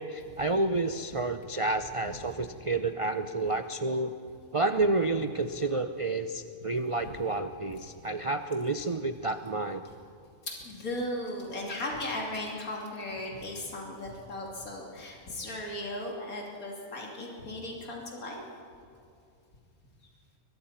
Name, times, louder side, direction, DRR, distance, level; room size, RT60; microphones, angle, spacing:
voice 1, 0.0-4.1 4.5-9.8, right 2 dB, 40° right, 9 dB, 0.4 m, -30 dB
voice 2, 10.5-18.4, left 1 dB, 70° left, -1 dB, 3.2 m, -37 dB
22.0 x 22.0 x 5.8 m, 2.5 s
omnidirectional pair, 1.5 m